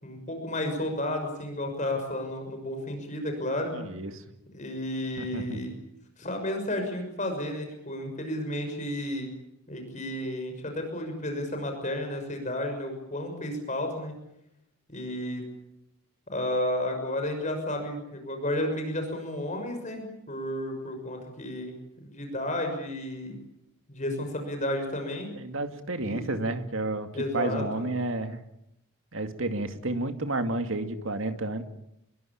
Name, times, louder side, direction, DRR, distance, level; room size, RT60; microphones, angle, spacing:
voice 1, 0.0-3.7 4.5-5.7 6.2-9.3 9.7-14.1 14.9-15.4 16.3-21.8 22.0-23.4 23.9-25.3 26.0-26.2 27.1-27.9, left 1 dB, 35° left, 5 dB, 6.3 m, -32 dB
voice 2, 3.7-4.2 5.2-5.6 25.4-28.4 29.1-31.6, right 2 dB, 65° right, 7 dB, 2.3 m, -31 dB
26.5 x 22.0 x 8.7 m, 0.81 s
head